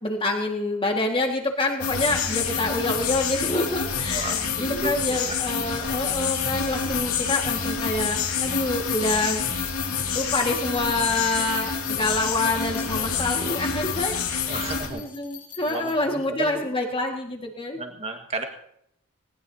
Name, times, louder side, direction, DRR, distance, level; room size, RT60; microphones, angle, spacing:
voice 1, 0.0-9.4 10.1-14.2 14.5-17.8, left 2 dB, 25° left, 2 dB, 1.8 m, -27 dB
sound 1, 1.8-14.9, left 6 dB, 80° left, 2.5 m, -27 dB
sound 2, 2.4-15.9, left 7 dB, 60° left, 5.0 m, -45 dB
voice 2, 4.1-4.9 5.2-5.3 14.5-15.0 15.6-16.7 17.8-18.4, right 3 dB, 30° right, 4 dB, 1.7 m, -33 dB
19.0 x 19.0 x 2.8 m, 0.75 s
head